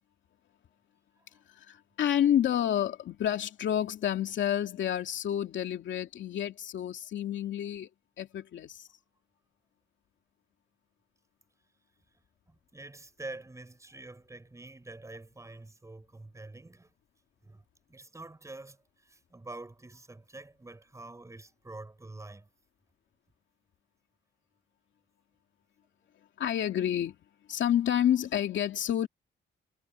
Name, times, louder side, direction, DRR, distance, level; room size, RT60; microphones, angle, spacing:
voice 1, 1.7-7.9 8.2-8.8 26.4-27.2 27.5-29.1, left 10 dB, 80° left, 2.6 m, -29 dB
voice 2, 12.5-16.9 17.4-22.5, right 2 dB, 15° right, 5.9 m, -47 dB
cardioid pair, 125°, 19 cm